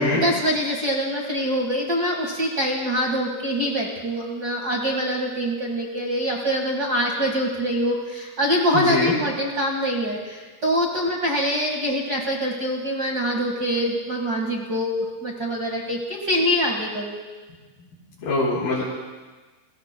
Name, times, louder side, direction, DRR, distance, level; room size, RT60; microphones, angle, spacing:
voice 1, 0.0-17.2, equal, 85° right, -1 dB, 0.8 m, -24 dB
voice 2, 8.7-9.1 18.2-18.8, left 2 dB, 60° left, -8 dB, 4.8 m, -23 dB
30.0 x 22.0 x 2.2 m, 1.3 s
omnidirectional pair, 4.7 m